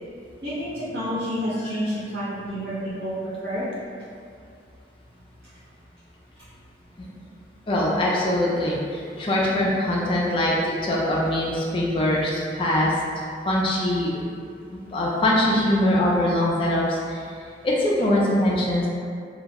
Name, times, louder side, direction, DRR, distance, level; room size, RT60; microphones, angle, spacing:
voice 1, 0.4-3.6, equal, 55° right, -14 dB, 0.6 m, -29 dB
voice 2, 7.7-13.0 13.4-14.3 14.7-17.2 17.6-18.9, left 1 dB, 30° left, -4 dB, 0.3 m, -22 dB
2.2 x 2.0 x 2.8 m, 2.3 s
head